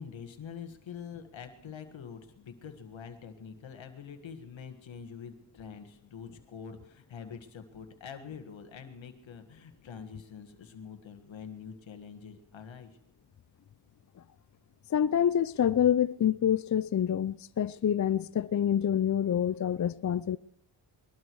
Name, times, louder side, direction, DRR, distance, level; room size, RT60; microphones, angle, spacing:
voice 1, 0.0-13.0, left 7 dB, 85° left, 1.8 m, -45 dB
voice 2, 14.9-20.4, left 9 dB, 40° left, 0.5 m, -27 dB
20.5 x 12.5 x 4.7 m
cardioid pair, 60°, 45 cm